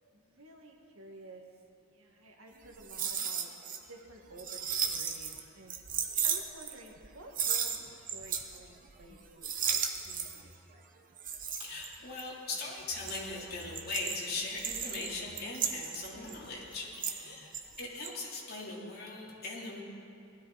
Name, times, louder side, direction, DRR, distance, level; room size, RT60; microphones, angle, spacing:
voice 1, 0.0-1.4 1.8-3.5 3.9-5.8 6.2-10.8 16.8-17.4, right 2 dB, 70° right, 1 dB, 1.8 m, -53 dB
sound 1, 2.7-3.8 4.1-5.4 5.7-7.1 7.3-8.6 8.8-9.1 9.4-10.5 11.2-12.4 12.8-17.3 17.5-18.1, right 7 dB, 40° right, 1.0 m, -35 dB
voice 2, 11.6-17.5 17.8-19.8, left 3 dB, 50° left, -5 dB, 3.2 m, -40 dB
19.0 x 12.5 x 4.1 m, 2.7 s
head